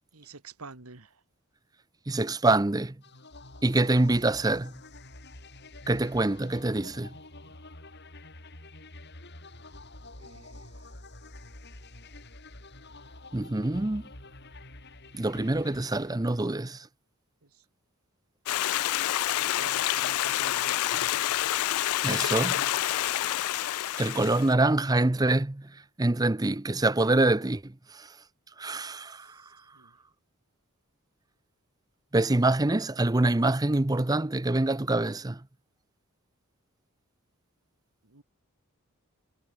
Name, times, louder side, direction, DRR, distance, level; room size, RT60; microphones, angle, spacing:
voice 1, 0.1-1.2 10.2-10.7 17.5-17.6 19.3-20.8 29.3-29.9 38.0-38.2, right 4 dB, 80° right, 2.0 m, -48 dB
voice 2, 2.1-2.9 3.6-4.7 5.9-7.1 13.3-14.0 15.1-16.9 22.0-22.6 24.0-25.7 26.0-28.1 28.6-29.3 32.1-35.4, right 2 dB, 15° right, 0.6 m, -25 dB
sound 1, 3.0-16.7, left 2 dB, 50° left, 6.3 m, -48 dB
Stream, 18.5-24.5, left 13 dB, 85° left, 0.4 m, -28 dB
head